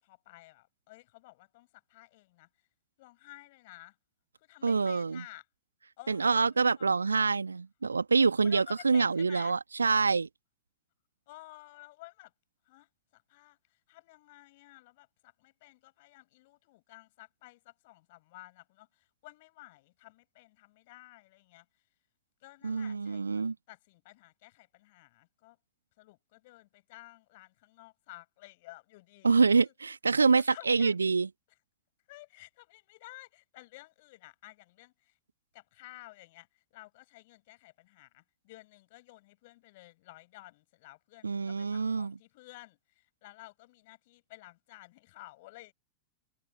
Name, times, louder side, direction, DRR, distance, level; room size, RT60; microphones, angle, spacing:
voice 1, 0.0-2.5 3.0-3.9 4.4-5.4 6.0-7.2 8.4-9.6 11.3-12.3 12.7-21.6 22.4-25.6 26.0-29.5 30.3-31.0 32.1-35.2 35.5-45.7, left 20 dB, 50° left, 6.8 m, -53 dB
voice 2, 4.6-5.2 6.1-10.3 22.6-23.5 29.2-31.3 41.2-42.2, right 4 dB, 75° right, 1.4 m, -26 dB
figure-of-eight pair, 90°, 0 cm